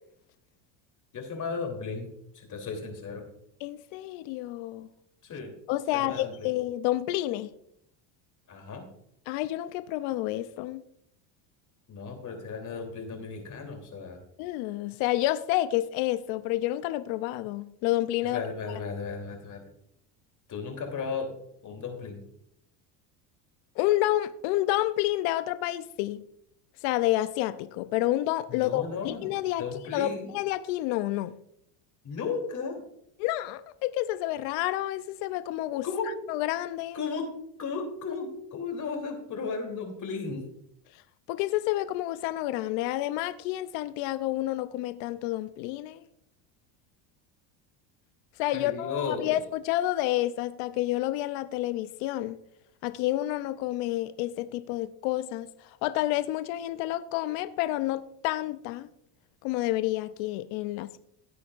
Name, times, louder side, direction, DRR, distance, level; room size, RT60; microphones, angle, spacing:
voice 1, 1.1-2.1 2.3-3.2 5.2-5.5 5.9-6.5 8.5-8.9 11.9-14.2 18.2-19.7 20.5-21.3 21.6-22.2 28.5-30.3 32.0-32.8 35.8-36.1 36.9-37.3 37.6-40.4 48.5-49.4, left 5 dB, 35° left, 3.2 m, -35 dB
voice 2, 3.6-4.9 5.7-7.5 9.3-10.8 14.4-18.4 23.8-26.2 26.8-29.6 29.9-31.3 33.2-35.9 36.3-37.0 41.3-46.0 48.4-52.4 52.8-58.9 59.4-61.0, left 15 dB, 70° left, 0.7 m, -29 dB
16.5 x 8.3 x 2.5 m
supercardioid pair, 105°, 48 cm